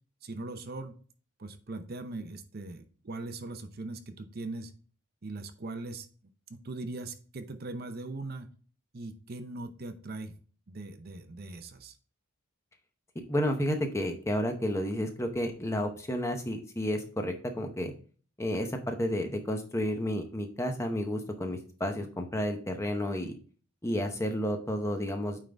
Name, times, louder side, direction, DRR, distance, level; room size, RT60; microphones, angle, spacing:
voice 1, 0.2-1.0 1.4-4.7 5.2-6.1 6.5-8.5 8.9-10.3 10.7-12.0, right 2 dB, 45° right, 8 dB, 0.6 m, -40 dB
voice 2, 13.1-17.9 18.4-23.4 23.8-25.4, equal, 10° left, 5 dB, 0.7 m, -31 dB
8.9 x 3.8 x 3.3 m, 0.41 s
head